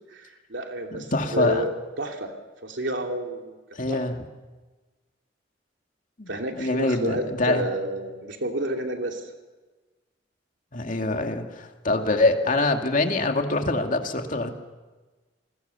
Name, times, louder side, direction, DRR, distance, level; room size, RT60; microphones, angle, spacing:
voice 1, 0.1-2.3 2.6-3.5 3.9-4.0 6.3-9.3, right 1 dB, 80° right, 3 dB, 2.8 m, -30 dB
voice 2, 0.9-1.6 3.7-4.1 6.2-7.6 10.7-14.5, left 2 dB, 45° left, 4 dB, 2.3 m, -24 dB
29.0 x 21.0 x 7.0 m, 1.3 s
head